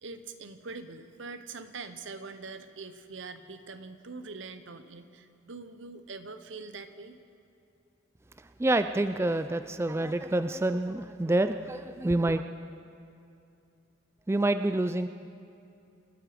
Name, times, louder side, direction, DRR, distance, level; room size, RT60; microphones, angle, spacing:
voice 1, 0.0-7.2, right 4 dB, 75° right, 10 dB, 0.9 m, -43 dB
voice 2, 8.6-12.4 14.3-15.1, right 2 dB, 15° right, 9 dB, 0.3 m, -27 dB
28.0 x 9.6 x 5.1 m, 2.6 s
head